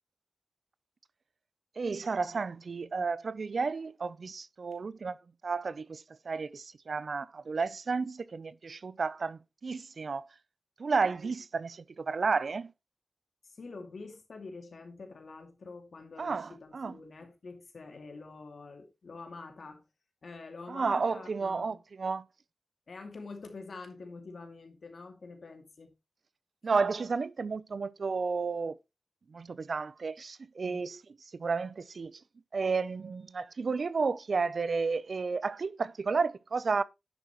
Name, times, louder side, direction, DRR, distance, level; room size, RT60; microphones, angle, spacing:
voice 1, 1.8-5.2 5.4-10.2 10.8-12.7 16.2-17.0 20.7-22.2 26.6-28.8 29.3-31.0 31.4-32.2 32.5-36.8, right 4 dB, 70° right, 0.5 m, -32 dB
voice 2, 13.5-19.8 20.2-21.8 22.9-25.9 30.6-30.9, left 3 dB, 75° left, 2.4 m, -46 dB
10.5 x 7.4 x 3.1 m
wide cardioid pair, 75°, 0 cm